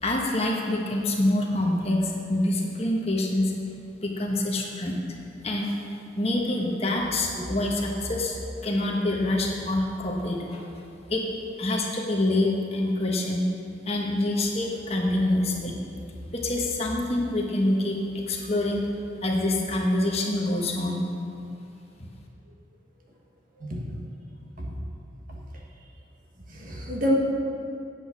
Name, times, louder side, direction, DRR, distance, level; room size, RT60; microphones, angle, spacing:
voice 1, 0.0-3.5 4.0-5.0 5.4-5.7 6.2-10.6 11.1-11.2 11.6-13.4 13.8-15.7 16.3-18.8 19.2-21.0, left 1 dB, 35° left, -1 dB, 1.2 m, -26 dB
voice 2, 26.5-27.1, equal, 45° right, -2 dB, 1.6 m, -28 dB
8.9 x 8.4 x 6.0 m, 2.6 s
head